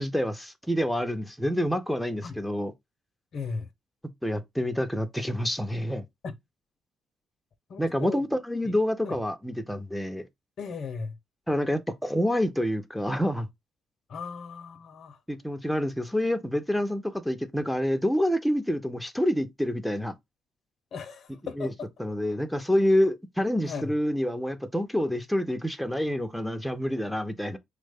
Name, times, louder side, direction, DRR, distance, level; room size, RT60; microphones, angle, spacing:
voice 1, 0.0-2.7 4.2-6.0 7.8-10.3 11.5-13.5 15.3-20.1 21.6-21.7 22.0-27.6, equal, ahead, 0.4 m, -27 dB
voice 2, 3.3-3.7 6.2-6.4 7.7-8.3 8.6-8.7 9.0-9.2 10.6-11.2 14.1-15.2 16.1-16.4 20.9-21.9 22.7-22.8 23.6-23.9, left 5 dB, 60° left, 0.5 m, -37 dB
3.1 x 2.1 x 3.3 m
cardioid pair, 90°, 0 cm